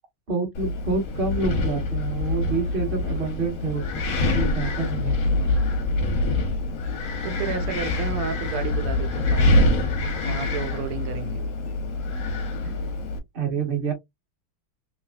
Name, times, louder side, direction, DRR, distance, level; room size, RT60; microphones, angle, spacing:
voice 1, 0.3-4.0 4.3-5.1 12.6-12.7 13.3-13.9, right 4 dB, 30° right, 1.2 m, -28 dB
Wind, 0.6-13.2, left 2 dB, 60° left, 0.8 m, -25 dB
voice 2, 7.2-9.7 10.2-11.4, right 8 dB, 85° right, 1.6 m, -32 dB
3.5 x 3.3 x 2.3 m
omnidirectional pair, 2.4 m